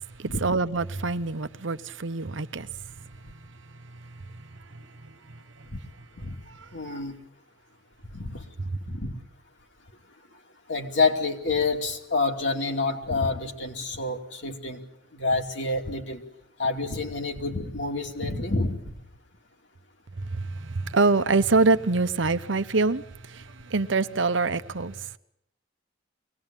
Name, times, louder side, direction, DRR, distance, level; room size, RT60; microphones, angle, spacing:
voice 1, 0.2-2.7 20.3-23.0 23.3-23.4 23.7-24.9, right 3 dB, 70° right, 0.9 m, -24 dB
voice 2, 6.7-7.2 8.1-8.4 8.8-9.1 10.7-14.8 15.1-16.2 16.6-18.9, left 3 dB, 60° left, 2.8 m, -28 dB
23.5 x 18.5 x 9.0 m
head